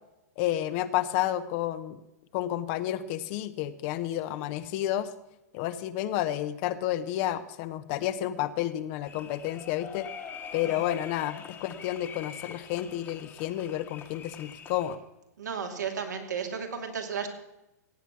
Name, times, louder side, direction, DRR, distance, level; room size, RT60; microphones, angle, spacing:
voice 1, 0.4-2.0 2.3-5.1 5.5-10.1 10.5-15.0, left 13 dB, 45° left, 13 dB, 0.9 m, -30 dB
sound 1, 9.1-14.9, left 7 dB, 25° left, 1.4 m, -44 dB
voice 2, 15.4-17.3, right 6 dB, 85° right, 2 dB, 2.6 m, -34 dB
16.5 x 8.3 x 6.0 m, 0.95 s
hypercardioid pair, 120°, 9 cm